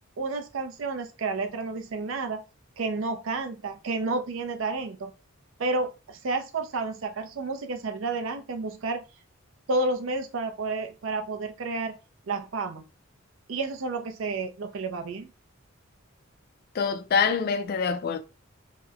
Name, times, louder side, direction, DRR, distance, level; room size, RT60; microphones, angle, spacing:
voice 1, 0.2-2.4 2.8-5.1 5.6-9.0 9.7-12.0 12.3-12.8 13.5-15.3, right 3 dB, 65° right, 0.4 m, -30 dB
voice 2, 16.8-18.2, left 6 dB, 45° left, 0.3 m, -25 dB
2.8 x 2.0 x 2.3 m
head